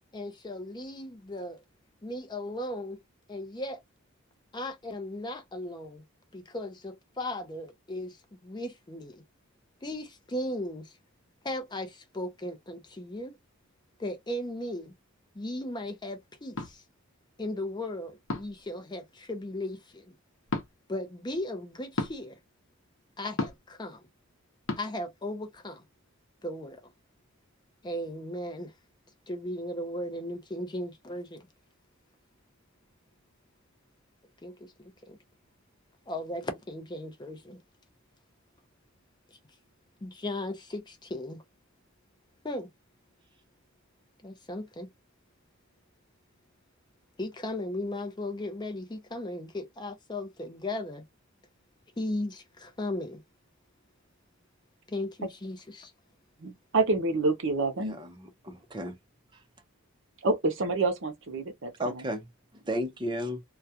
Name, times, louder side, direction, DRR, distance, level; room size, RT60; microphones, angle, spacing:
voice 1, 0.1-1.6 2.0-3.0 3.3-3.8 4.5-6.0 6.3-9.2 9.8-11.0 11.4-13.4 14.0-14.9 15.3-16.8 17.4-20.1 20.9-22.4 23.2-24.1 24.8-25.8 26.4-26.8 27.8-28.7 29.3-31.5 34.4-34.7 35.0-35.2 36.1-37.6 39.3-39.4 40.0-41.4 42.4-42.7 44.2-44.9 47.2-51.0 52.0-53.2 54.9-55.9, left 1 dB, 20° left, 0.5 m, -36 dB
sound 1, 16.6-16.7 18.3-18.6 20.5-20.7 22.0-22.2 23.4-23.7 24.7-24.8, left 2 dB, 65° left, 0.8 m, -32 dB
voice 2, 56.4-58.0 60.2-61.9, right 3 dB, 60° right, 0.7 m, -27 dB
voice 3, 57.8-59.0 59.3-59.4 61.8-63.4, equal, 20° right, 0.6 m, -34 dB
2.4 x 2.2 x 2.7 m
head